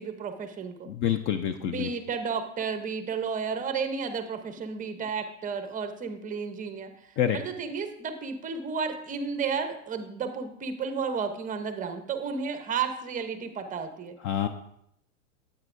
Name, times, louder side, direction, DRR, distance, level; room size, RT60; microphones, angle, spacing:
voice 1, 0.0-0.9 1.6-14.2, right 5 dB, 20° right, 8 dB, 0.8 m, -32 dB
voice 2, 0.9-1.9 7.2-7.4 14.2-14.5, left 9 dB, 35° left, 9 dB, 0.4 m, -27 dB
9.4 x 8.5 x 2.6 m, 0.74 s
hypercardioid pair, 120°, 39 cm